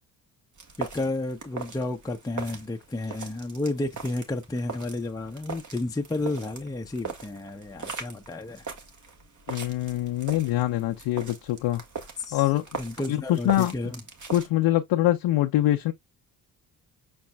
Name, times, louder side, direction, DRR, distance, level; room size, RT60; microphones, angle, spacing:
sound 1, 0.6-14.5, right 5 dB, 40° right, 1.4 m, -40 dB
voice 1, 0.8-8.6 12.2-12.5 12.8-14.0, left 2 dB, 10° left, 0.6 m, -31 dB
voice 2, 9.5-11.8 12.3-12.6 13.1-13.7 14.3-15.9, left 14 dB, 70° left, 0.7 m, -24 dB
5.3 x 4.2 x 2.2 m
hypercardioid pair, 50°, 45 cm